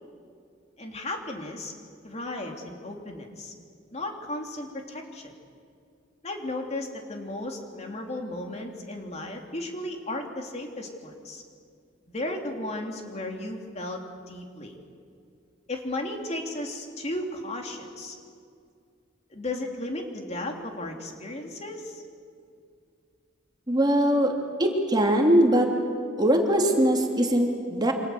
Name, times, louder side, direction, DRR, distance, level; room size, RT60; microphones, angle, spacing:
voice 1, 0.8-1.7 2.0-3.5 3.9-5.3 6.2-11.4 12.1-14.0 14.3-14.8 15.7-18.2 19.3-22.0, left 1 dB, 35° left, 2 dB, 3.1 m, -35 dB
voice 2, 23.7-24.3 24.6-25.7 26.2-27.9, right 1 dB, 25° right, 1 dB, 3.2 m, -21 dB
28.5 x 26.0 x 8.0 m, 2.3 s
head